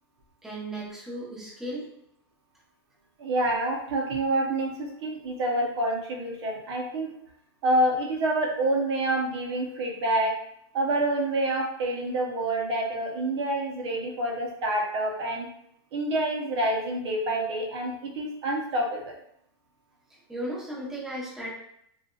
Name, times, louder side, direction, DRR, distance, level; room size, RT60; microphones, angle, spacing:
voice 1, 0.4-1.9 20.3-21.5, right 1 dB, 5° right, -7 dB, 0.8 m, -35 dB
voice 2, 3.2-7.1 7.6-10.3 10.7-15.5 15.9-19.1, right 1 dB, 75° right, 0 dB, 0.7 m, -27 dB
2.6 x 2.3 x 2.2 m, 0.73 s
supercardioid pair, 135°, 14 cm